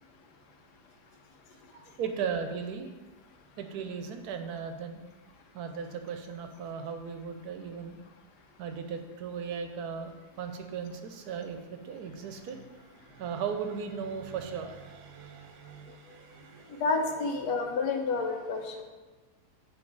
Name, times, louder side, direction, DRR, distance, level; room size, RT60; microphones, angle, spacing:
voice 1, 1.7-2.9 3.6-5.0 5.5-8.0 8.6-17.3, right 6 dB, 75° right, 6 dB, 1.1 m, -37 dB
voice 2, 16.8-18.8, left 4 dB, 85° left, 3 dB, 1.3 m, -29 dB
7.9 x 3.1 x 4.6 m, 1.3 s
omnidirectional pair, 1.7 m